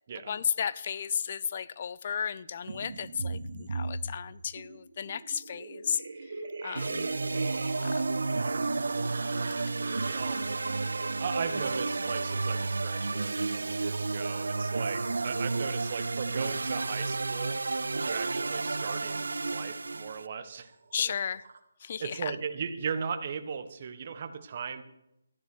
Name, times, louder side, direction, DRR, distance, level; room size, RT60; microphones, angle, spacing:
voice 1, 0.3-6.3 6.6-7.1 7.8-8.1 20.9-21.4 21.8-22.3, left 7 dB, 35° left, 18 dB, 0.5 m, -34 dB
sound 1, 2.7-20.4 20.7-21.6, right 3 dB, 55° right, 2.1 m, -42 dB
sound 2, 6.7-20.3, right 3 dB, 85° right, 0.5 m, -31 dB
voice 2, 10.1-10.4 11.2-17.6 18.0-20.7 21.0-21.1 22.0-24.8, right 6 dB, 35° right, 9 dB, 1.4 m, -37 dB
14.5 x 9.5 x 6.1 m, 0.82 s
hypercardioid pair, 170°, 0 cm